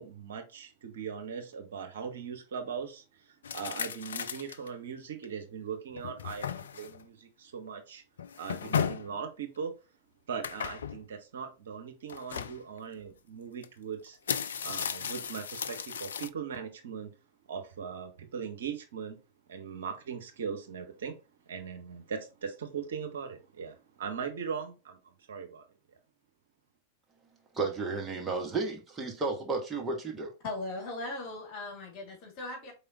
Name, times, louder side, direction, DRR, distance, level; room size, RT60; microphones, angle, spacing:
voice 1, 0.0-8.0 8.4-9.7 10.3-14.2 14.6-17.1 17.5-19.2 19.5-21.2 21.4-25.6, right 6 dB, 60° right, 1.1 m, -39 dB
sound 1, 3.4-4.7 5.2-5.3 5.9-7.0 8.2-9.1 10.4-11.0 12.1-12.6 13.6-13.7 14.1-16.3, left 7 dB, 65° left, 0.3 m, -35 dB
voice 2, 27.5-30.3, right 3 dB, 15° right, 1.4 m, -33 dB
voice 3, 30.4-32.7, left 2 dB, 40° left, 2.2 m, -38 dB
4.7 x 3.6 x 2.8 m
figure-of-eight pair, 90°, 0 cm